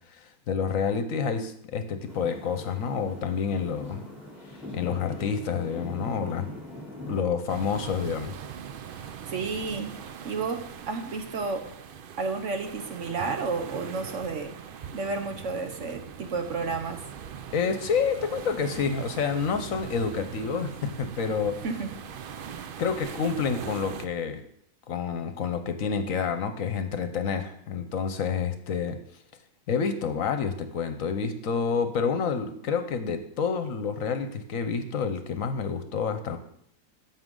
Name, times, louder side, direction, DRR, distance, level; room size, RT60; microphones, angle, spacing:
voice 1, 0.5-4.0 4.7-6.5 7.0-8.3 17.5-21.6 22.8-24.4 24.9-29.0 29.7-36.4, left 6 dB, 65° left, 9 dB, 1.1 m, -28 dB
sound 1, 2.1-7.2, left 1 dB, ahead, 2.8 m, -41 dB
sound 2, 7.5-24.1, right 8 dB, 80° right, 0.5 m, -41 dB
voice 2, 9.3-9.9 10.2-11.7 12.2-14.5 14.9-17.0 21.6-21.9, right 4 dB, 60° right, 6 dB, 1.1 m, -31 dB
11.0 x 7.6 x 3.8 m, 0.68 s
omnidirectional pair, 1.6 m